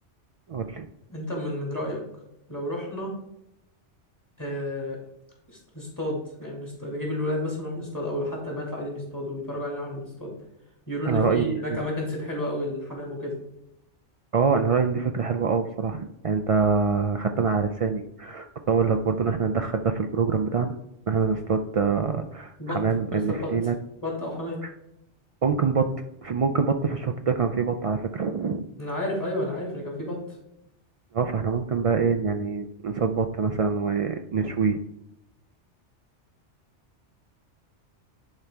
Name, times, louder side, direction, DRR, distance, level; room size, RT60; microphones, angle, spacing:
voice 1, 0.5-0.9 11.1-11.8 14.3-20.7 21.1-23.7 25.4-25.9 26.2-28.6 31.1-34.8, right 5 dB, 65° right, 6 dB, 0.3 m, -25 dB
voice 2, 1.1-2.0 2.5-3.1 4.4-5.0 5.5-10.3 10.9-13.4 22.6-23.5 24.0-24.6 28.8-30.4, left 1 dB, 15° left, -2 dB, 2.6 m, -31 dB
10.5 x 4.5 x 3.5 m, 0.82 s
omnidirectional pair, 1.2 m